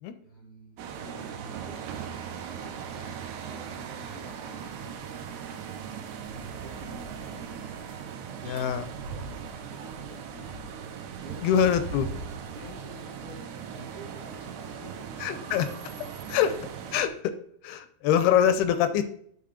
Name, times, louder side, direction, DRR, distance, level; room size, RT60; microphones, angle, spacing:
voice 1, 0.2-1.8 2.3-5.6 6.2-10.6 11.2-11.8 12.5-15.9 16.3-16.5, right 1 dB, 40° right, -3 dB, 0.8 m, -49 dB
sound 1, 0.8-17.1, right 7 dB, 80° right, 2.9 m, -39 dB
voice 2, 8.4-8.8 11.4-12.1 15.2-15.7 16.3-16.5 16.9-17.3 17.6-19.0, left 9 dB, 80° left, 10 dB, 2.3 m, -24 dB
9.4 x 3.8 x 5.0 m, 0.63 s
omnidirectional pair, 4.7 m